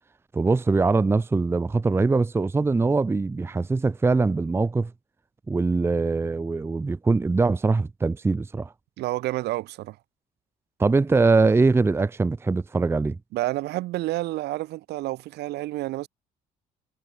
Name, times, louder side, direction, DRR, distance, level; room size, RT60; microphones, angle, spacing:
voice 1, 0.3-4.9 5.5-8.7 10.8-13.2, right 3 dB, 15° right, 0.6 m, -22 dB
voice 2, 9.0-10.0 13.3-16.1, right 17 dB, 80° right, 2.8 m, -29 dB
cardioid pair, 110°, 17 cm